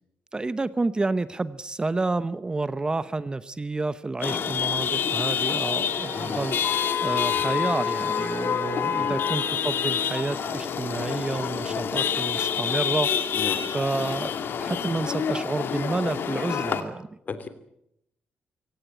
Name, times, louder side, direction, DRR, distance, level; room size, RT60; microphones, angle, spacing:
voice 1, 0.3-13.3 13.7-17.1, right 3 dB, 20° right, 15 dB, 0.8 m, -29 dB
Chatter / Vehicle horn car horn honking / Traffic noise roadway noise, 4.2-16.8, left 8 dB, 65° left, 2.3 m, -27 dB
Wind instrument woodwind instrument, 5.8-10.6, right 5 dB, 50° right, 2.9 m, -42 dB
voice 2, 13.3-13.7 17.3-17.5, left 4 dB, 45° left, 11 dB, 2.9 m, -34 dB
24.0 x 17.5 x 9.0 m, 0.79 s
cardioid pair, 105°, 4 cm